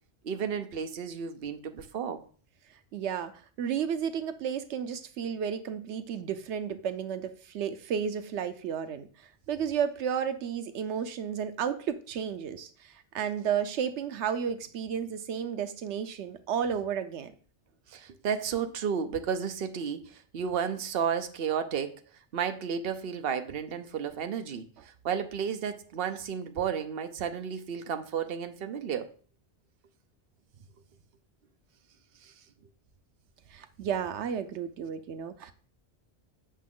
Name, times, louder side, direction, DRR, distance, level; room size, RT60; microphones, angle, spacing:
voice 1, 0.2-2.2 17.9-22.0 22.3-29.1 32.2-32.3, right 7 dB, 60° right, 1.0 m, -32 dB
voice 2, 2.9-17.3 33.5-35.5, right 8 dB, 90° right, 1.0 m, -32 dB
8.4 x 6.0 x 3.7 m
omnidirectional pair, 1.1 m